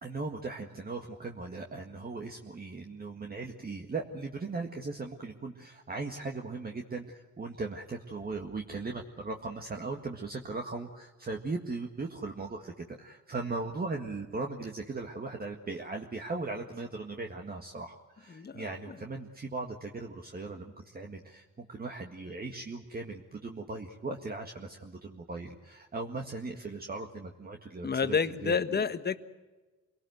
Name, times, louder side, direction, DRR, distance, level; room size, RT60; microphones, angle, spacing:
voice 1, 0.0-28.8, right 3 dB, 30° right, 2 dB, 1.9 m, -38 dB
voice 2, 18.3-19.0 27.8-29.2, left 6 dB, 35° left, 11 dB, 1.4 m, -30 dB
26.0 x 18.0 x 8.0 m, 1.2 s
cardioid pair, 90°, 30 cm